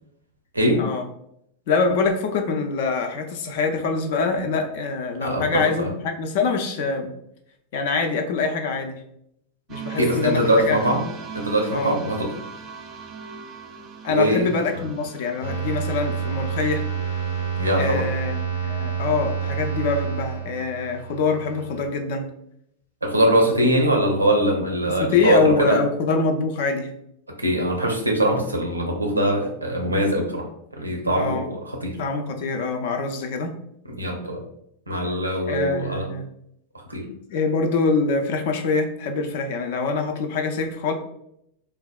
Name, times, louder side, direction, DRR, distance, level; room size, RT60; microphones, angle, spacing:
voice 1, 1.7-7.1 7.7-9.0 9.7-10.9 11.7-11.9 14.0-16.8 17.7-22.3 24.9-26.9 31.2-31.5 32.0-33.5 35.5-36.3 37.3-40.9, left 4 dB, 50° left, 5 dB, 0.4 m, -24 dB
voice 2, 5.2-5.9 9.9-11.0 11.3-12.3 14.1-14.5 17.6-18.0 23.0-25.8 27.4-30.5 30.8-32.0 33.9-34.4 34.9-36.1 36.9-37.1, right 1 dB, 80° right, 1 dB, 0.6 m, -22 dB
sound 1, 9.7-18.4, right 5 dB, 30° right, 0.4 m, -40 dB
sound 2, 15.4-21.9, right 7 dB, 85° left, 0.8 m, -28 dB
3.3 x 2.2 x 2.2 m, 0.75 s
figure-of-eight pair, 90°, 0 cm